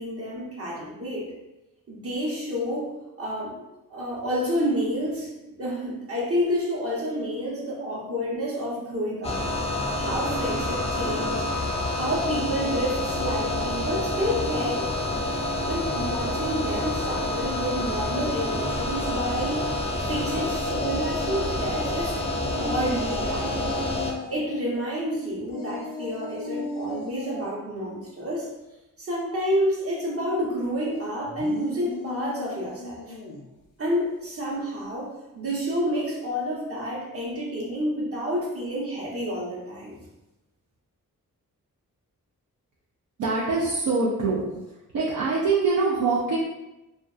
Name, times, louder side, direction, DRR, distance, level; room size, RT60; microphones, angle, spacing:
voice 1, 0.0-1.3 1.9-2.9 3.2-3.5 3.9-9.4 10.0-11.5 11.9-15.2 15.7-22.2 22.6-23.8 24.3-28.5 29.0-33.2 33.8-35.1 35.3-40.0, equal, 40° right, -5 dB, 1.0 m, -29 dB
sound 1, 9.2-24.1, left 1 dB, 20° left, 0.4 m, -28 dB
sound 2, 22.5-24.5 25.5-27.4 31.2-33.5, left 2 dB, 70° left, 0.6 m, -36 dB
voice 2, 43.2-44.4 44.9-46.4, right 4 dB, 65° right, -5 dB, 0.5 m, -24 dB
2.4 x 2.3 x 2.4 m, 0.99 s
cardioid pair, 55°, 34 cm